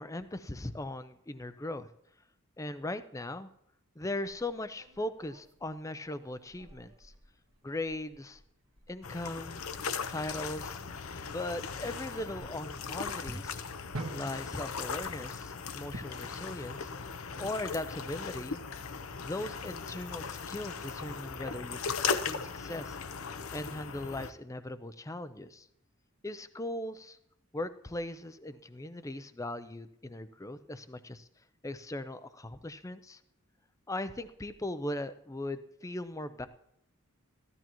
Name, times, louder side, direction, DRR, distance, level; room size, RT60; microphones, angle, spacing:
voice 1, 0.0-1.9 2.6-3.5 4.0-7.1 7.6-8.4 8.9-9.6 10.1-10.8 11.2-13.6 14.1-16.9 17.4-18.6 19.2-23.0 23.5-25.7 26.2-27.2 27.5-31.3 31.6-33.2 33.9-36.5, left 1 dB, 15° left, 12 dB, 0.5 m, -39 dB
sound 1, 4.2-16.4, right 1 dB, 75° right, 1.6 m, -49 dB
sound 2, 9.0-24.3, left 5 dB, 80° left, 0.8 m, -38 dB
15.0 x 12.5 x 3.0 m, 0.79 s
head